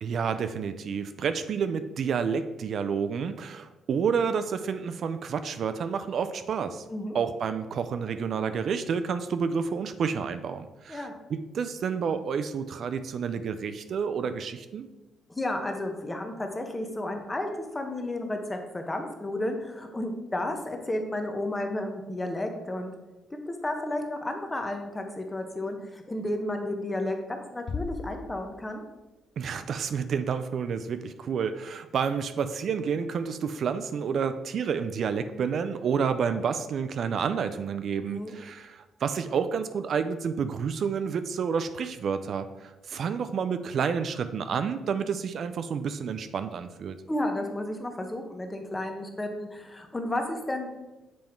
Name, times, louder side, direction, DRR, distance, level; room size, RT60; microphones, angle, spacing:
voice 1, 0.0-6.8 7.1-14.9 29.4-47.0, right 6 dB, 60° right, 10 dB, 0.4 m, -29 dB
voice 2, 15.3-22.9 23.5-28.8 38.0-38.4 47.1-50.7, left 1 dB, 20° left, 4 dB, 1.0 m, -32 dB
Bass drum, 27.7-29.1, left 5 dB, 50° left, 0.4 m, -38 dB
7.6 x 3.6 x 4.5 m, 1.1 s
cardioid pair, 90°, 0 cm